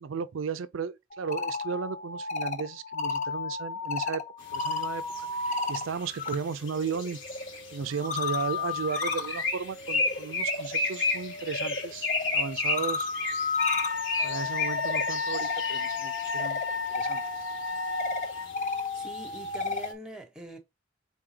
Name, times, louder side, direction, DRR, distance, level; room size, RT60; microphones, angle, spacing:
voice 1, 0.0-4.2 4.5-5.0 5.4-7.2 7.7-13.1 14.2-16.6 16.9-17.2, right 6 dB, 90° right, 0.5 m, -35 dB
sound 1, 1.1-6.4 6.7-19.9, left 4 dB, 40° left, 0.7 m, -34 dB
sound 2, 4.4-19.9, left 3 dB, 70° left, 1.7 m, -34 dB
Wind instrument woodwind instrument, 13.6-18.5, left 5 dB, 85° left, 0.8 m, -32 dB
voice 2, 18.9-20.6, equal, 5° right, 1.1 m, -43 dB
4.0 x 3.7 x 2.8 m
head